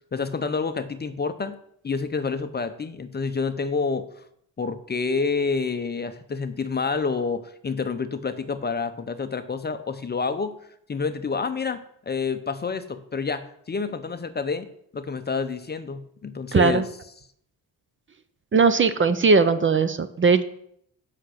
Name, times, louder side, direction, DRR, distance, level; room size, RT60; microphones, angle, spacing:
voice 1, 0.1-1.5 1.8-4.0 4.6-10.6 10.9-11.8 12.1-14.7 14.9-16.8, left 4 dB, 25° left, 10 dB, 0.6 m, -28 dB
voice 2, 16.5-16.9 18.5-20.4, right 4 dB, 30° right, 12 dB, 0.5 m, -19 dB
8.1 x 5.8 x 6.4 m, 0.70 s
cardioid pair, 120°, 40 cm